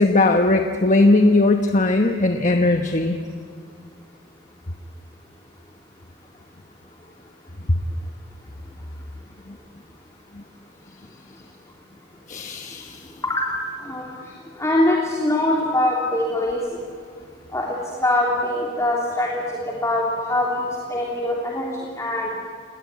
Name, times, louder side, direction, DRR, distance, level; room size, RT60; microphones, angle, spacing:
voice 1, 0.0-3.2 12.3-13.0, left 2 dB, 40° left, 4 dB, 1.1 m, -18 dB
voice 2, 13.8-14.2 14.6-16.8 17.5-21.7 22.0-22.3, left 1 dB, 15° left, -3 dB, 3.2 m, -23 dB
29.0 x 19.0 x 9.6 m, 2.2 s
head